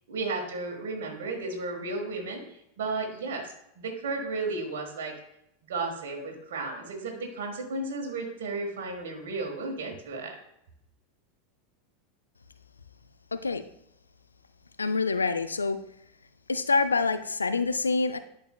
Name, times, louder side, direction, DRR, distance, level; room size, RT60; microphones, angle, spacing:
voice 1, 0.1-5.1 5.7-10.3, right 3 dB, 65° right, 1 dB, 1.5 m, -34 dB
voice 2, 13.3-13.6 14.8-15.8 16.5-18.2, left 4 dB, 85° left, 11 dB, 0.4 m, -26 dB
11.0 x 4.9 x 2.3 m, 0.77 s
figure-of-eight pair, 85°, 0 cm